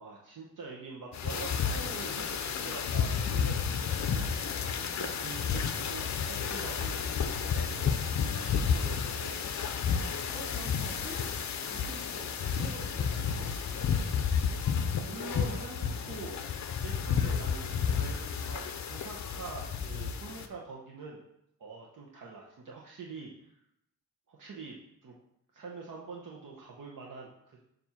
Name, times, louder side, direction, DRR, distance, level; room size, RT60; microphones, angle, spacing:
voice 1, 0.0-7.0 7.4-8.0 8.3-9.5 14.6-16.4 16.8-21.2 21.6-23.3 24.3-24.8 25.0-25.1 25.5-27.6, right 4 dB, 60° right, -2 dB, 0.9 m, -45 dB
sound 1, 1.1-20.5, left 7 dB, 50° left, 0.5 m, -31 dB
voice 2, 10.1-11.4 11.6-13.9, right 1 dB, 30° right, -4 dB, 1.9 m, -46 dB
7.0 x 2.7 x 5.7 m, 0.77 s
wide cardioid pair, 140°, 35 cm